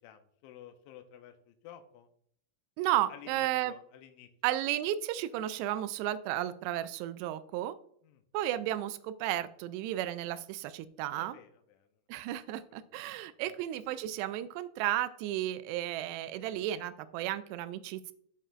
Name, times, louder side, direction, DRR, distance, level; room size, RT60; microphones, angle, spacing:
voice 1, 0.0-2.1 3.1-4.3 8.0-8.2 11.1-11.9 13.5-13.6, left 10 dB, 90° left, 7 dB, 3.0 m, -52 dB
voice 2, 2.8-3.7 4.4-7.8 8.3-11.4 12.1-18.1, right 13 dB, 85° right, 13 dB, 2.5 m, -33 dB
13.5 x 5.6 x 2.5 m, 0.64 s
omnidirectional pair, 5.2 m